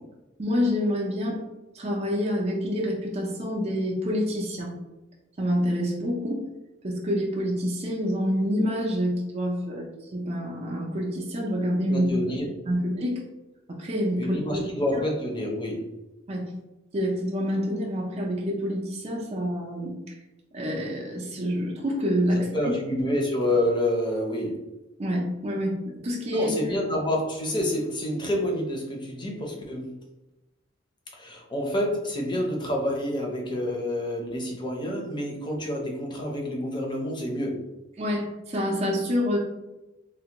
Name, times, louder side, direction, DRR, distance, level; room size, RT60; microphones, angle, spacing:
voice 1, 0.4-1.4 1.7-4.8 5.4-6.5 6.8-12.1 12.7-13.2 13.7-14.7 16.3-16.5 16.9-20.1 20.5-22.5 25.0-26.7 38.0-39.4, equal, 35° right, -2 dB, 0.5 m, -27 dB
voice 2, 11.9-12.5 14.2-15.8 22.5-24.7 26.3-29.9 31.1-37.6, left 1 dB, 25° left, 0 dB, 0.6 m, -28 dB
3.3 x 2.2 x 2.9 m, 1.0 s
head